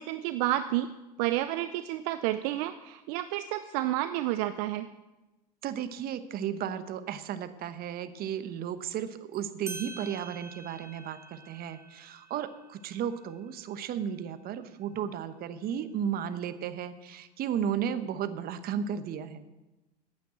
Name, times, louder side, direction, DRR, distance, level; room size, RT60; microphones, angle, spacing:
voice 1, 0.0-4.9, right 14 dB, 65° right, 11 dB, 0.6 m, -30 dB
voice 2, 5.6-19.4, right 8 dB, 45° right, 11 dB, 1.0 m, -34 dB
sound 1, 9.3-9.4 9.7-14.7, right 3 dB, 15° right, 2.1 m, -48 dB
9.2 x 9.1 x 7.7 m, 1.1 s
hypercardioid pair, 90°, 21 cm